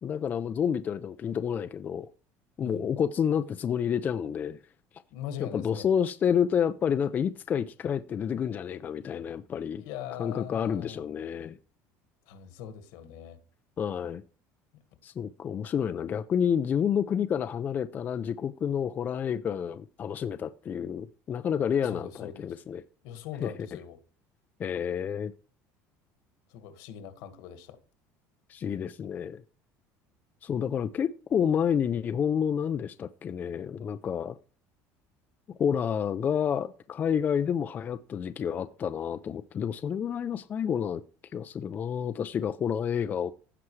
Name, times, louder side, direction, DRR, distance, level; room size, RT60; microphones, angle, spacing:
voice 1, 0.0-2.1 2.6-4.6 5.4-9.8 10.2-11.6 13.8-14.2 15.0-22.8 23.4-23.5 24.6-25.3 28.5-29.4 30.4-34.4 35.6-41.0 41.3-43.3, left 8 dB, 25° left, 0.4 m, -29 dB
voice 2, 2.6-2.9 5.1-5.9 9.8-11.0 12.3-13.4 21.8-22.6 23.0-24.0 26.5-27.8, left 9 dB, 75° left, 1.7 m, -41 dB
15.5 x 6.0 x 3.2 m
cardioid pair, 160°, 7 cm